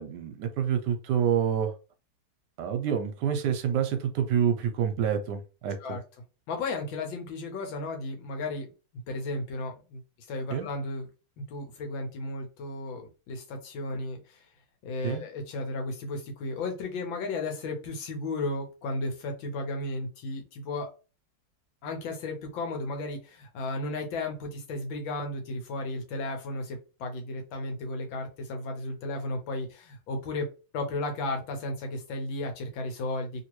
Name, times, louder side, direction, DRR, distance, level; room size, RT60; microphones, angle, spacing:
voice 1, 0.0-1.7 2.6-5.8 10.5-10.7 15.0-15.2, right 8 dB, 75° right, 1.1 m, -27 dB
voice 2, 6.5-8.7 9.1-10.0 10.3-11.1 11.4-14.4 14.8-20.9 21.8-30.5 30.7-33.4, left 2 dB, 85° left, 1.6 m, -34 dB
3.1 x 2.9 x 3.0 m
omnidirectional pair, 2.1 m